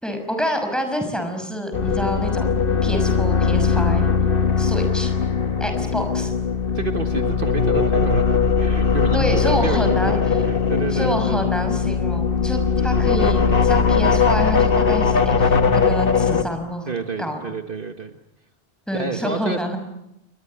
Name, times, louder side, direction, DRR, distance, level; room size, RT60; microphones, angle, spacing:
voice 1, 0.0-2.5 2.8-4.1 4.6-5.1 5.6-6.3 9.1-10.2 10.9-16.9 17.2-17.5 18.9-19.8, equal, ahead, 5 dB, 6.0 m, -27 dB
sound 1, 1.7-16.4, left 5 dB, 55° left, 1.5 m, -20 dB
voice 2, 6.7-11.5 16.9-18.2 18.9-19.7, right 4 dB, 50° right, 6 dB, 1.7 m, -29 dB
29.0 x 23.0 x 8.8 m, 0.83 s
omnidirectional pair, 1.2 m